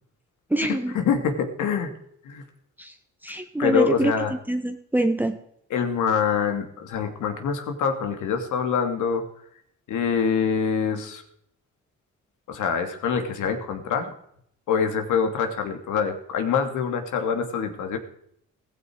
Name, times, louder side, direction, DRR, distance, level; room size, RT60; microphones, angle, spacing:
voice 1, 0.5-0.9 2.8-2.9 3.2-5.4, right 1 dB, 5° right, 5 dB, 1.5 m, -25 dB
voice 2, 1.1-1.9 2.2-2.4 3.6-4.3 5.7-9.2 9.9-11.2 12.5-14.1 14.7-18.0, left 6 dB, 80° left, 6 dB, 2.8 m, -25 dB
16.5 x 15.5 x 4.8 m, 0.70 s
cardioid pair, 90°, 30 cm